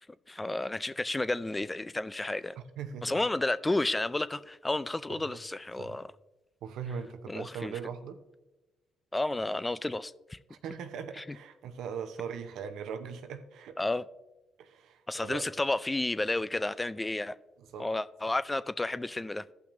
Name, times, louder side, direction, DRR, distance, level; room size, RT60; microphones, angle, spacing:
voice 1, 0.3-2.6 3.0-6.1 7.3-7.7 9.1-10.4 11.2-11.3 13.8-14.0 15.1-17.3 17.8-19.4, left 2 dB, 20° left, 0.3 m, -31 dB
voice 2, 2.5-3.2 5.1-5.4 5.8-6.0 6.6-8.2 10.5-13.8 14.6-15.4 17.7-17.9, right 7 dB, 75° right, 0.7 m, -40 dB
14.5 x 5.7 x 2.6 m
supercardioid pair, 55°, 0 cm